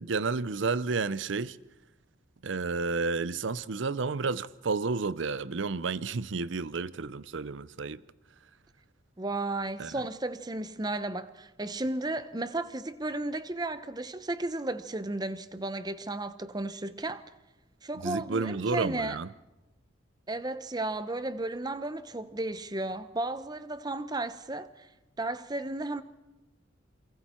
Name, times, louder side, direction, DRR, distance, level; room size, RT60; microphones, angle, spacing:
voice 1, 0.0-1.6 2.4-8.0 9.8-9.9 18.0-19.3, right 4 dB, 70° right, 0.6 m, -31 dB
voice 2, 9.2-17.2 17.8-19.2 20.3-24.9 25.2-26.0, right 2 dB, 20° right, 0.8 m, -34 dB
28.5 x 23.5 x 4.4 m
head